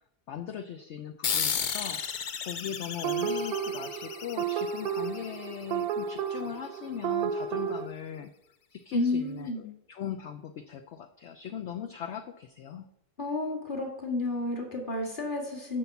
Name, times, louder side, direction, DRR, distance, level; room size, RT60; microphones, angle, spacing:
voice 1, 0.3-8.3 8.7-12.9, left 9 dB, 65° left, 7 dB, 0.7 m, -39 dB
sound 1, 1.2-6.2, left 7 dB, 85° left, 0.4 m, -34 dB
sound 2, 3.0-7.9, right 8 dB, 75° right, 1.1 m, -32 dB
voice 2, 8.9-9.7 13.2-15.8, left 2 dB, 30° left, 1 dB, 2.0 m, -31 dB
7.6 x 5.4 x 7.1 m, 0.80 s
omnidirectional pair, 1.7 m